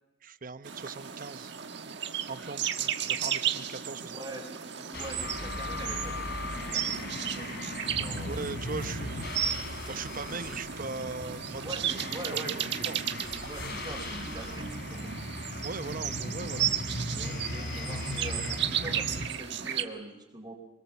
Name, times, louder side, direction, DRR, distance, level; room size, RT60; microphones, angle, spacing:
voice 1, 0.2-1.5 2.3-4.2 8.2-9.5 9.9-12.0 12.3-12.6 12.8-13.1 15.6-16.7, right 4 dB, 45° right, 12 dB, 0.9 m, -39 dB
sound 1, 0.6-19.8, right 9 dB, 60° right, 1.5 m, -34 dB
voice 2, 4.1-7.5 7.9-8.3 11.6-15.2 17.1-20.5, right 2 dB, 25° right, 1 dB, 3.8 m, -43 dB
sound 2, 4.9-19.3, left 1 dB, 60° left, 3.4 m, -38 dB
25.0 x 22.0 x 7.0 m, 1.1 s
head